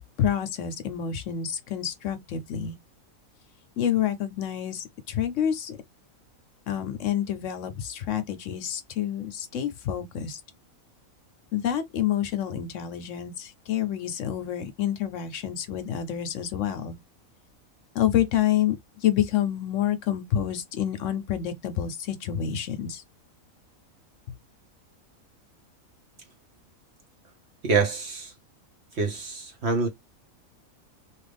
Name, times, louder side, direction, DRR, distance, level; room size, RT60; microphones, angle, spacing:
voice 1, 0.2-2.8 3.8-5.8 6.7-10.4 11.5-17.0 17.9-18.8 19.0-23.0, left 10 dB, 70° left, 0.9 m, -28 dB
voice 2, 27.6-28.3 29.0-29.9, right 4 dB, 55° right, 1.0 m, -26 dB
3.0 x 2.4 x 3.2 m
omnidirectional pair, 1.4 m